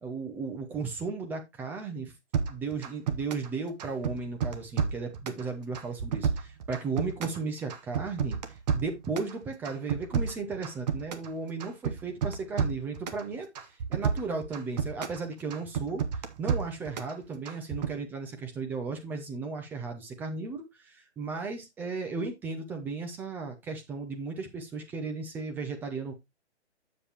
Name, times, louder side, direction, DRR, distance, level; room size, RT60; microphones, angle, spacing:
voice 1, 0.0-2.1 2.5-8.4 8.7-13.5 13.9-16.0 16.4-26.1, right 4 dB, 5° right, 0.6 m, -35 dB
sound 1, 2.3-3.5 3.8-5.4 5.7-7.4 7.7-9.3 9.6-11.3 11.6-13.2 13.6-15.2 15.5-17.1 17.5-17.9, right 6 dB, 35° right, 1.0 m, -30 dB
8.0 x 7.2 x 2.9 m
figure-of-eight pair, 135°, 35 cm